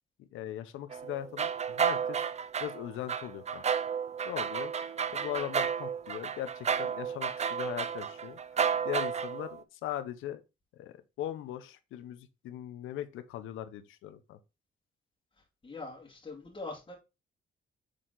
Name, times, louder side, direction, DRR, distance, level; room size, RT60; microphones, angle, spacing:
voice 1, 0.3-2.2 2.6-3.6 4.2-8.4 8.8-10.4 10.7-14.4, left 12 dB, 85° left, 0.8 m, -39 dB
sound 1, 0.9-9.6, right 7 dB, 35° right, 0.5 m, -32 dB
voice 2, 15.6-16.9, left 3 dB, 25° left, 2.2 m, -42 dB
6.6 x 3.8 x 3.8 m
cardioid pair, 90°, 20 cm